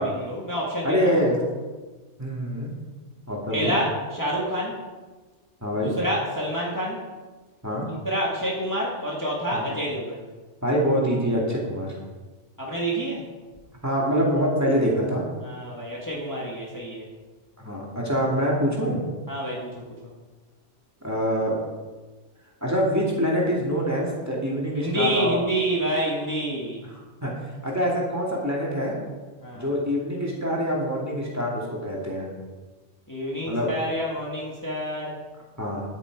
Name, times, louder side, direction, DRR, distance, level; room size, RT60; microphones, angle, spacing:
voice 1, 0.0-1.5 3.5-4.8 5.8-7.0 7.9-10.2 12.6-13.3 15.4-17.1 19.3-20.1 24.8-26.8 29.4-29.7 33.1-35.2, right 1 dB, 15° left, -4 dB, 1.7 m, -28 dB
voice 2, 0.8-1.4 2.2-2.7 3.3-3.7 5.6-5.9 7.6-7.8 9.5-9.6 10.6-11.9 13.8-15.2 17.6-19.0 21.0-21.5 22.6-25.4 27.2-27.3 27.6-29.0 29.5-32.3 33.5-33.7 35.6-35.8, equal, 15° right, -4 dB, 2.3 m, -25 dB
10.0 x 8.8 x 4.8 m, 1.3 s
omnidirectional pair, 1.2 m